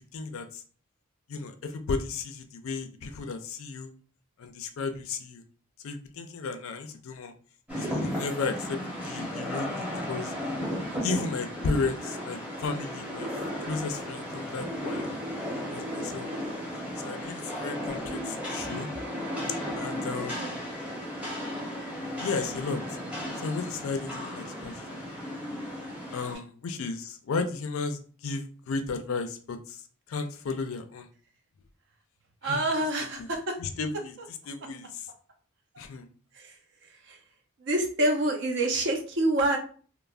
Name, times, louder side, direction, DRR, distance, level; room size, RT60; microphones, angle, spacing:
voice 1, 0.1-0.6 1.3-3.9 4.4-5.4 5.8-7.3 7.7-10.3 10.9-13.3 13.6-15.2 15.7-16.3 17.0-18.9 19.8-20.5 22.2-22.8 23.4-25.0 26.1-29.8 30.1-31.1 32.4-33.3 33.6-35.1 35.8-36.1, left 4 dB, 65° left, 7 dB, 0.4 m, -34 dB
Rain, 7.7-26.3, equal, 5° right, 0.8 m, -35 dB
voice 2, 16.0-16.6 20.4-20.5 32.4-33.6 36.4-36.5 37.1-37.2 37.6-39.6, right 1 dB, 55° right, 4 dB, 0.6 m, -27 dB
3.2 x 2.0 x 2.4 m, 0.41 s
head